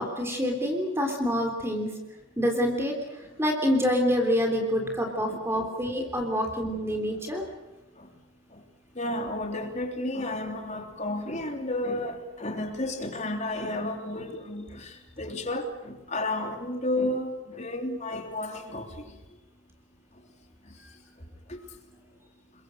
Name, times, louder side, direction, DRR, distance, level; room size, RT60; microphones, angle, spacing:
voice 1, 0.0-2.0 2.4-7.4, equal, 10° right, 2 dB, 3.4 m, -27 dB
voice 2, 8.9-19.1 21.5-21.6, left 1 dB, 35° left, 4 dB, 3.3 m, -32 dB
29.5 x 22.5 x 6.4 m, 1.1 s
head